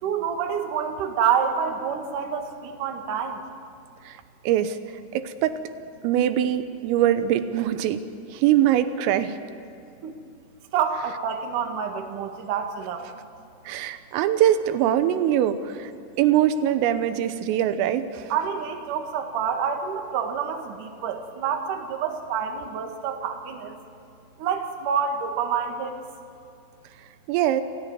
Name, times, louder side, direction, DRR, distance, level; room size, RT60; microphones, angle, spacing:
voice 1, 0.0-3.4 10.0-10.2 10.7-13.0 18.3-23.8 24.4-25.9, right 7 dB, 55° right, 4 dB, 2.5 m, -27 dB
voice 2, 4.4-4.8 5.1-5.6 6.0-8.0 8.3-9.4 13.7-15.9 16.2-18.3 27.3-27.6, right 11 dB, 90° right, 10 dB, 3.6 m, -22 dB
28.0 x 16.0 x 9.4 m, 2.4 s
omnidirectional pair, 5.9 m